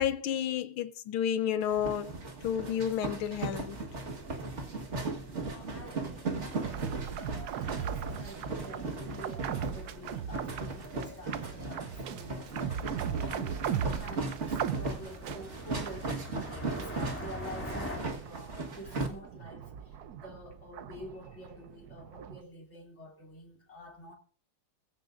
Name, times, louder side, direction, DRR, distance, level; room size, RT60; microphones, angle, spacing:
voice 1, 0.0-2.1 2.4-3.8, left 9 dB, 75° left, 1.6 m, -31 dB
sound 1, 1.6-19.1, right 3 dB, 35° right, 1.7 m, -37 dB
sound 2, 3.7-18.0, left 1 dB, 5° left, 2.4 m, -47 dB
voice 2, 5.4-13.6 14.0-24.2, equal, 30° left, 3.2 m, -48 dB
sound 3, 6.5-16.4 16.7-22.4, right 8 dB, 65° right, 1.0 m, -39 dB
20.5 x 15.5 x 2.6 m
omnidirectional pair, 2.4 m